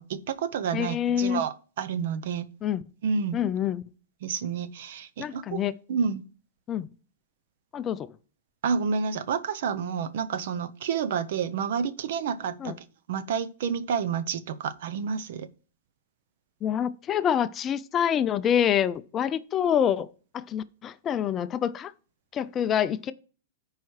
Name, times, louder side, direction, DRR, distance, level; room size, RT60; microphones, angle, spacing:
voice 1, 0.0-2.5 3.0-3.4 4.2-5.6 5.9-6.2 8.6-12.7 13.1-15.5, right 6 dB, 65° right, 0.7 m, -29 dB
voice 2, 0.7-1.4 2.6-2.8 3.3-3.8 5.2-5.8 6.7-6.9 7.7-8.1 12.6-12.8 16.6-20.1 20.3-21.9 22.3-23.1, left 9 dB, 25° left, 0.4 m, -26 dB
13.5 x 4.8 x 3.2 m
hypercardioid pair, 140°, 0 cm